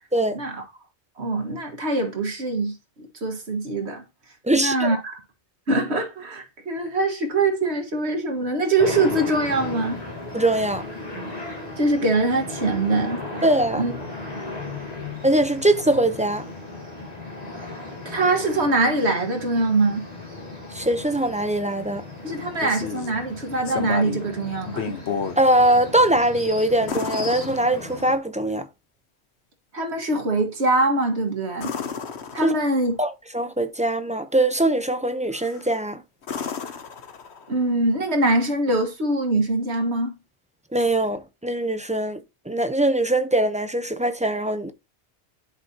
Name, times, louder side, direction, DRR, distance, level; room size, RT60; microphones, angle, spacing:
voice 1, 1.2-2.7 3.2-4.0 4.5-5.2 5.7-10.0 11.8-13.4 13.7-13.9 18.1-20.0 22.2-24.9 29.7-31.7 32.3-33.0 37.5-40.1, right 2 dB, 70° right, 2.0 m, -23 dB
voice 2, 4.4-4.9 10.3-10.8 13.4-13.8 15.2-16.4 20.7-22.0 25.4-28.7 32.4-32.5 33.0-36.0 40.7-42.2 42.5-44.7, right 1 dB, 10° right, 0.6 m, -22 dB
sound 1, 8.8-28.2, left 2 dB, 35° left, 2.6 m, -36 dB
sound 2, 22.3-23.2 23.7-24.3 24.7-25.4 26.9-28.1 31.6-32.9 35.3-35.7 36.2-37.6 39.7-39.8, left 6 dB, 75° left, 1.2 m, -32 dB
11.0 x 6.0 x 2.9 m
omnidirectional pair, 1.1 m